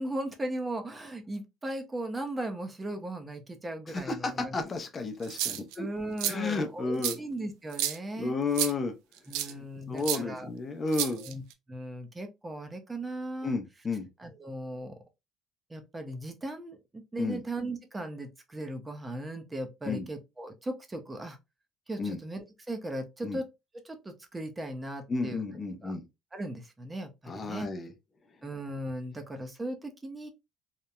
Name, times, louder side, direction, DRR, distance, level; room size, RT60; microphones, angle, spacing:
voice 1, 0.0-4.5 5.8-8.4 9.3-10.5 11.2-11.4 11.7-13.6 14.2-14.9 15.7-21.4 21.9-23.5 23.8-25.4 25.8-25.9 26.3-27.7 28.4-30.3, right 1 dB, 20° right, 0.5 m, -37 dB
voice 2, 3.9-5.8 6.3-7.2 8.2-8.9 9.4-11.2 13.4-14.1 17.2-17.4 19.8-20.1 22.0-22.2 23.2-23.4 25.1-26.0 27.3-27.9, left 3 dB, 30° left, 0.5 m, -32 dB
sound 1, 5.2-5.8 6.2-6.3 7.0-7.1 7.7-8.0 8.5-8.7 9.3-9.5 10.0-10.2 10.9-11.5, right 11 dB, 90° right, 0.3 m, -30 dB
2.8 x 2.0 x 2.3 m
cardioid pair, 105°, 0 cm